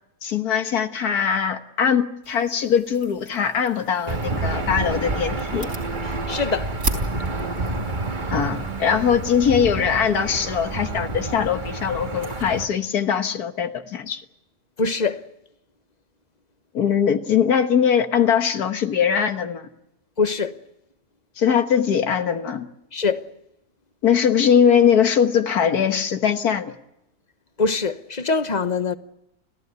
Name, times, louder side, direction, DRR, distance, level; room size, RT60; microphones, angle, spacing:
voice 1, 0.2-5.7 8.3-14.2 16.7-19.7 21.4-22.7 24.0-26.7, left 7 dB, 80° left, 1.8 m, -21 dB
sound 1, 2.2-9.4, right 2 dB, 65° right, 4.4 m, -37 dB
Aircraft / Engine, 4.1-12.6, right 2 dB, 30° right, 1.7 m, -29 dB
voice 2, 6.3-6.7 14.8-15.2 20.2-20.6 22.9-23.2 27.6-28.9, left 4 dB, 30° left, 1.0 m, -23 dB
30.0 x 15.0 x 9.6 m
omnidirectional pair, 1.6 m